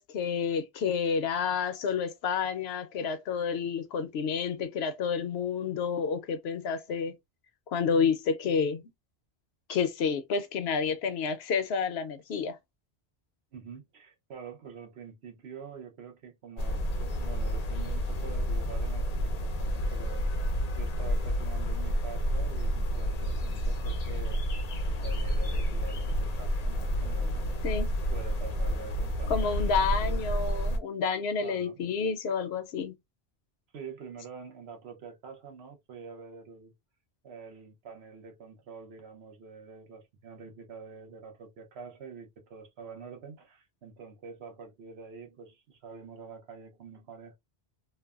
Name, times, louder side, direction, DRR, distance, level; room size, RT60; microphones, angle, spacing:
voice 1, 0.0-7.1 7.7-8.8 9.7-12.6 27.6-27.9 29.3-32.9, left 6 dB, 75° left, 0.8 m, -29 dB
voice 2, 13.5-29.5 30.0-30.2 31.4-31.8 33.7-36.7 37.2-47.3, right 6 dB, 75° right, 1.1 m, -46 dB
sound 1, 16.6-30.8, equal, 50° left, 0.5 m, -30 dB
3.2 x 2.1 x 2.3 m
omnidirectional pair, 1.1 m